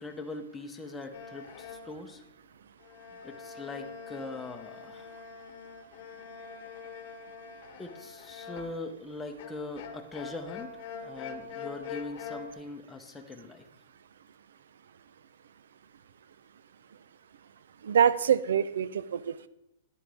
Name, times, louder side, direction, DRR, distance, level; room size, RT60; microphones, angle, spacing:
voice 1, 0.0-2.2 3.2-5.1 7.8-13.7, left 3 dB, 10° left, 3 dB, 0.8 m, -41 dB
sound 1, 1.1-2.0 2.8-8.9 9.4-12.5, left 5 dB, 50° left, 1.0 m, -44 dB
voice 2, 17.8-19.5, right 8 dB, 85° right, 17 dB, 0.5 m, -25 dB
10.0 x 9.0 x 3.5 m, 0.83 s
hypercardioid pair, 155°, 0 cm